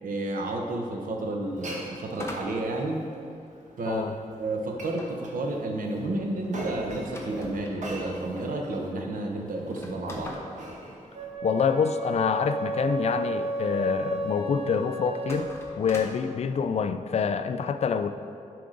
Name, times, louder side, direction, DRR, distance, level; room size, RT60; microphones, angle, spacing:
voice 1, 0.0-3.0 3.8-4.1 4.4-10.4, right 2 dB, 85° right, 2 dB, 1.0 m, -31 dB
Glass, 1.4-11.3, right 1 dB, 65° right, 1.3 m, -42 dB
sound 1, 2.1-3.7 5.0-7.8 8.5-8.6 8.8-8.9 9.6-11.7 15.2-16.3, left 1 dB, 20° left, 0.9 m, -42 dB
Wind instrument woodwind instrument, 11.1-15.6, right 2 dB, 45° right, 0.7 m, -32 dB
voice 2, 11.4-15.5 15.8-18.1, left 6 dB, 50° left, 9 dB, 0.4 m, -26 dB
10.0 x 4.8 x 3.9 m, 2.5 s
wide cardioid pair, 140°, 14 cm